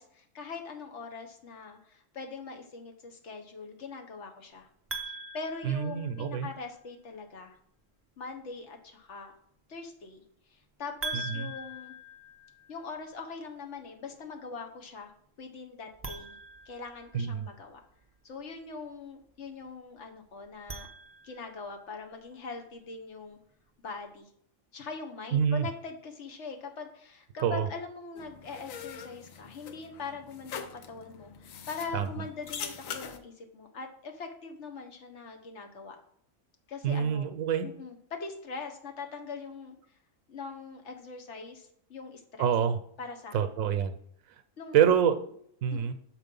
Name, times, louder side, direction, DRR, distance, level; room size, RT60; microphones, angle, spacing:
voice 1, 0.0-4.7 5.3-7.6 8.2-9.3 9.7-11.9 12.7-16.4 16.6-17.8 18.2-20.9 21.2-23.4 23.8-24.3 24.7-36.0 36.7-37.3 37.6-39.8 40.3-42.5 43.0-43.5 44.6-44.8 45.7-45.9, left 4 dB, 60° left, 4 dB, 1.3 m, -42 dB
sound 1, 4.9-6.6 11.0-13.0 15.9-17.5 20.4-21.7, right 2 dB, 15° right, 0.5 m, -42 dB
voice 2, 5.6-6.5 11.1-11.5 17.1-17.5 25.3-25.7 27.4-27.7 31.9-32.1 36.8-37.7 42.4-42.8 43.3-44.0 44.7-45.3 45.6-45.9, right 8 dB, 85° right, 9 dB, 1.0 m, -26 dB
sound 2, 28.2-33.2, left 7 dB, 80° left, 1.1 m, -43 dB
6.5 x 4.7 x 5.3 m, 0.67 s
omnidirectional pair, 1.4 m